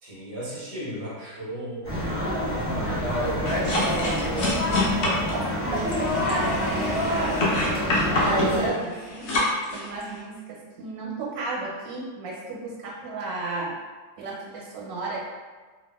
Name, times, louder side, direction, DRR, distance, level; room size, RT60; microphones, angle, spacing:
voice 1, 0.0-1.9 2.5-4.1, right 1 dB, 45° right, -8 dB, 0.9 m, -36 dB
sound 1, 1.8-8.7, equal, 15° right, 0.4 m, -26 dB
sound 2, 3.4-10.2, left 2 dB, 65° left, 0.9 m, -27 dB
voice 2, 5.3-13.8 14.2-15.2, right 3 dB, 85° right, -3 dB, 1.4 m, -34 dB
2.7 x 2.5 x 2.2 m, 1.4 s
omnidirectional pair, 2.0 m